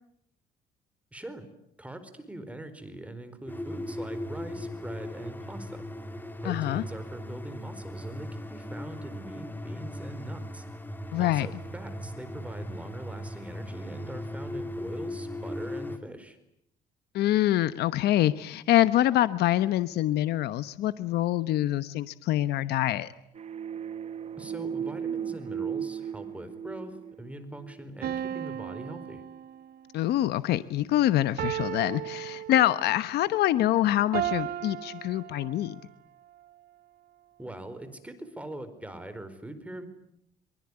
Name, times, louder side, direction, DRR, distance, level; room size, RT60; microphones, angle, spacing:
voice 1, 1.1-1.5 1.8-5.8 6.4-10.6 11.2-16.4 24.4-29.2 37.4-39.9, right 1 dB, 10° right, 10 dB, 4.5 m, -42 dB
sound 1, 3.5-16.0, left 1 dB, 10° left, 3.4 m, -38 dB
voice 2, 6.4-6.8 11.1-11.5 17.1-23.1 29.9-35.8, left 13 dB, 75° left, 13 dB, 1.1 m, -25 dB
sound 2, 23.4-27.9, right 8 dB, 40° right, 1.1 m, -36 dB
sound 3, 28.0-29.9 31.4-33.0 34.1-35.8, right 11 dB, 60° right, 1.1 m, -35 dB
24.0 x 24.0 x 9.9 m, 0.76 s
cardioid pair, 110°, 17 cm